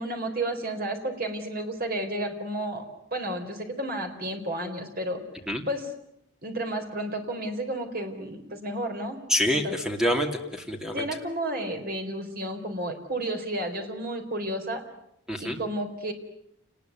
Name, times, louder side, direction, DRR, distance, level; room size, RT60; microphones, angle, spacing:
voice 1, 0.0-2.8 3.1-5.2 5.7-5.9 6.4-9.2 9.5-9.8 10.9-14.8 15.4-16.1, right 1 dB, 45° right, 5 dB, 4.1 m, -32 dB
voice 2, 9.3-11.0 15.3-15.6, equal, 5° right, 4 dB, 2.7 m, -26 dB
28.5 x 20.5 x 9.3 m, 0.79 s
head